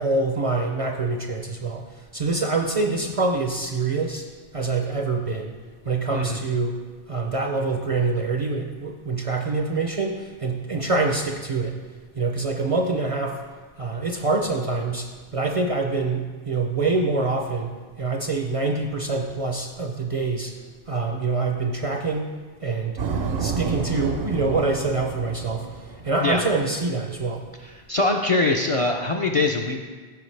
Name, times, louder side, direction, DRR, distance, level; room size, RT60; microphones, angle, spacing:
voice 1, 0.0-1.8 2.1-4.2 4.5-5.6 5.9-6.8 7.1-11.8 12.2-13.4 13.8-20.5 20.9-22.3 22.6-23.0 23.4-25.7 26.0-27.4, right 3 dB, 45° right, 3 dB, 0.5 m, -25 dB
sound 1, 23.0-26.7, right 5 dB, 70° right, 0.9 m, -30 dB
voice 2, 27.9-29.8, left 2 dB, 45° left, 2 dB, 0.4 m, -22 dB
14.0 x 4.7 x 3.3 m, 1.4 s
omnidirectional pair, 1.1 m